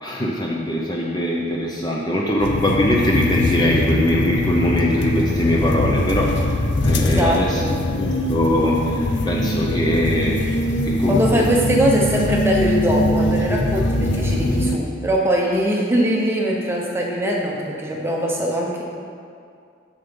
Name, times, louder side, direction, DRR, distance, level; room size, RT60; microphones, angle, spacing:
voice 1, 0.0-6.5 6.8-7.6 8.0-10.4 10.8-11.5, left 1 dB, 20° left, -2 dB, 0.7 m, -21 dB
sound 1, 2.4-14.8, left 1 dB, 60° left, 0.6 m, -22 dB
voice 2, 7.0-7.7 11.1-18.8, equal, 10° right, -2 dB, 1.0 m, -21 dB
7.2 x 7.1 x 5.4 m, 2.3 s
head